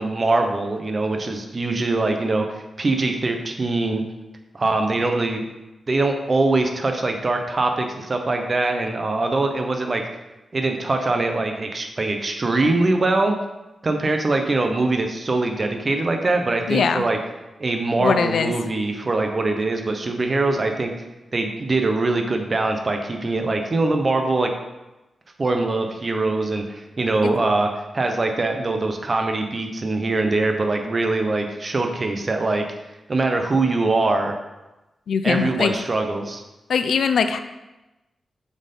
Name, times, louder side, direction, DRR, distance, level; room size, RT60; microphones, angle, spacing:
voice 1, 0.0-4.0 4.5-5.4 5.9-10.0 10.5-13.3 13.8-17.2 17.6-20.9 21.3-24.5 25.4-32.6 33.1-34.3 35.2-36.4, right 2 dB, 35° right, 4 dB, 0.9 m, -22 dB
voice 2, 16.7-17.0 18.0-18.5 27.2-27.3 35.1-35.7 36.7-37.4, left 6 dB, 80° left, 9 dB, 0.5 m, -21 dB
7.0 x 4.5 x 5.4 m, 1.0 s
wide cardioid pair, 120°, 0 cm